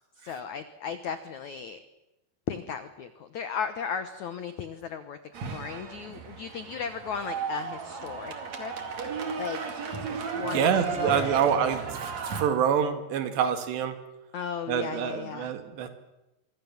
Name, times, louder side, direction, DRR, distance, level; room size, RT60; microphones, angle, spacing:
voice 1, 0.2-1.8 2.5-5.2 5.5-8.7 9.0-9.7 10.3-11.4 14.3-15.5, left 7 dB, 80° left, 10 dB, 1.7 m, -36 dB
sound 1, 5.3-12.4, right 5 dB, 45° right, 3.3 m, -35 dB
voice 2, 10.5-14.0 14.7-15.9, right 8 dB, 75° right, 8 dB, 4.2 m, -26 dB
25.5 x 25.0 x 7.3 m, 0.94 s
omnidirectional pair, 5.1 m